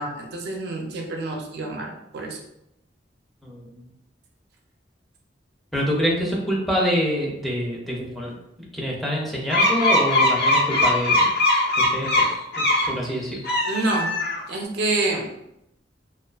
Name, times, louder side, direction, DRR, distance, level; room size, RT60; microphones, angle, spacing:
voice 1, 0.0-2.4 13.7-14.2 14.5-15.3, right 2 dB, 65° right, 1 dB, 0.4 m, -27 dB
voice 2, 3.4-3.8 5.7-8.3 8.6-11.3 11.8-12.3 12.6-13.4, equal, ahead, -4 dB, 0.4 m, -26 dB
sound 1, 9.5-12.9 13.3-14.6, left 1 dB, 60° left, 0.5 m, -20 dB
2.4 x 2.3 x 2.3 m, 0.82 s
head